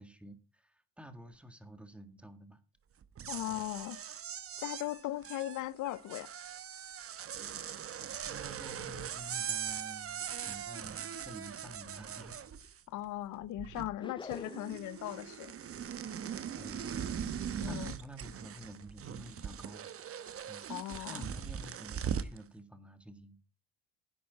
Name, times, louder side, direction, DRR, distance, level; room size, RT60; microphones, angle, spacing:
voice 1, 0.0-2.6 8.2-12.4 16.6-17.0 17.6-19.9 20.5-20.6 21.1-23.4, right 1 dB, 5° right, 1.9 m, -50 dB
sound 1, 3.0-13.0 13.3-14.1 14.3-22.4, right 8 dB, 50° right, 1.0 m, -41 dB
voice 2, 3.3-4.0 4.6-6.3 12.9-15.5 17.6-17.9 20.7-21.3, left 15 dB, 80° left, 0.6 m, -38 dB
sound 2, 14.0-14.9, left 4 dB, 15° left, 0.6 m, -46 dB
11.0 x 8.5 x 4.7 m
cardioid pair, 90°, 30 cm